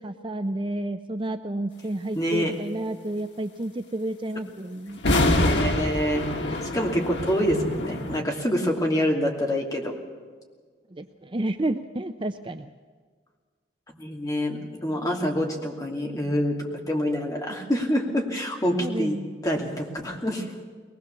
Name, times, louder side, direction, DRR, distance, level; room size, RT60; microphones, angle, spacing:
voice 1, 0.0-5.0 10.9-12.7 18.8-19.3, right 1 dB, 30° right, 8 dB, 0.6 m, -30 dB
voice 2, 2.1-2.5 5.1-6.3 6.6-10.0 13.9-19.2 19.4-20.5, equal, 20° left, 0 dB, 2.8 m, -26 dB
sound 1, 5.0-8.2, left 1 dB, 80° left, 2.0 m, -25 dB
22.5 x 20.0 x 7.1 m, 1.6 s
head